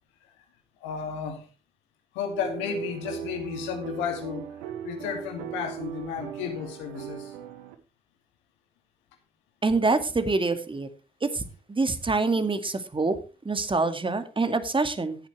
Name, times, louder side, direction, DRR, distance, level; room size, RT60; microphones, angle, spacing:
voice 1, 0.8-1.5 2.1-4.5 4.8-7.3, left 7 dB, 85° left, 2.5 m, -33 dB
sound 1, 2.3-7.8, right 10 dB, 85° right, 1.3 m, -38 dB
voice 2, 9.6-10.9 11.2-13.2 13.4-15.2, right 3 dB, 25° right, 2.2 m, -26 dB
15.5 x 9.4 x 3.3 m
hypercardioid pair, 45°, 19 cm